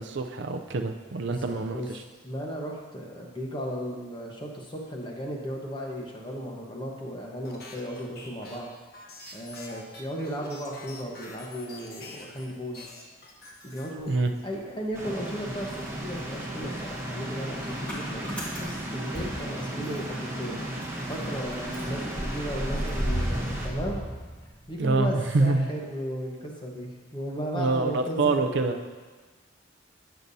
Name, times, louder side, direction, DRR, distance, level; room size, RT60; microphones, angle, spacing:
voice 1, 0.0-2.0 14.1-14.3 24.8-25.7 27.5-28.7, right 3 dB, 60° right, 5 dB, 0.5 m, -26 dB
voice 2, 1.3-8.7 9.3-12.8 13.6-14.1 14.4-18.3 18.6-20.7 21.1-24.0 24.7-28.9, equal, 25° left, -1 dB, 1.2 m, -35 dB
sound 1, 7.4-12.5 12.7-14.4, left 2 dB, 50° left, 1.1 m, -46 dB
Motor vehicle (road) / Engine starting, 14.0-15.2 15.5-20.2 20.5-20.6 20.8-24.9, equal, 5° left, 1.6 m, -35 dB
sound 2, 14.9-23.7, right 1 dB, 15° right, 1.3 m, -35 dB
15.0 x 6.8 x 2.7 m, 1.4 s
head